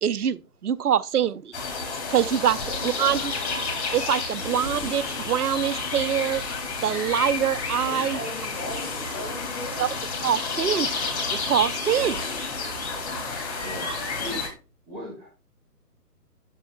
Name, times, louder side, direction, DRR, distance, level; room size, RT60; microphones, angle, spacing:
voice 1, 0.0-1.5 2.1-2.6 2.8-3.3 3.9-6.4 6.8-8.2 9.8-9.9 10.2-10.9 11.3-12.2, right 9 dB, 70° right, 0.6 m, -24 dB
sound 1, 1.5-14.5, left 4 dB, 45° left, 2.1 m, -30 dB
voice 2, 2.7-3.2 7.8-9.9, left 1 dB, 15° left, 1.7 m, -37 dB
voice 3, 4.6-5.2 8.1-8.3 11.0-11.2 11.9-12.1 13.6-14.5 14.9-15.4, equal, 15° right, 2.3 m, -41 dB
12.0 x 4.0 x 2.2 m
figure-of-eight pair, 140°, 47 cm